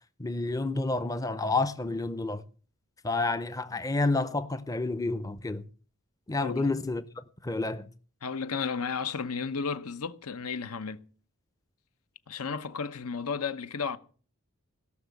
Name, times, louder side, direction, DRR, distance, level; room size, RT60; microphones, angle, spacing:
voice 1, 0.2-2.4 3.0-5.6 6.3-7.0 7.4-7.9, left 3 dB, 15° left, 0.5 m, -29 dB
voice 2, 8.2-11.0 12.3-14.0, left 5 dB, 80° left, 0.9 m, -33 dB
17.0 x 6.3 x 8.2 m
head